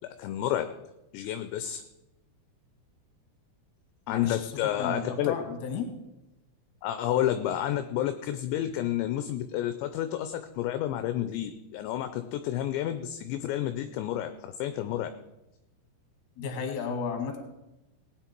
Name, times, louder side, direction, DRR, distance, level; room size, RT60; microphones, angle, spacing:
voice 1, 0.0-0.7 1.1-1.8 4.1-5.4 6.8-15.1, left 12 dB, 80° left, 9 dB, 2.7 m, -30 dB
voice 2, 4.1-5.9 16.4-17.4, left 5 dB, 50° left, 4 dB, 2.7 m, -34 dB
18.5 x 9.7 x 4.5 m, 0.96 s
omnidirectional pair, 5.5 m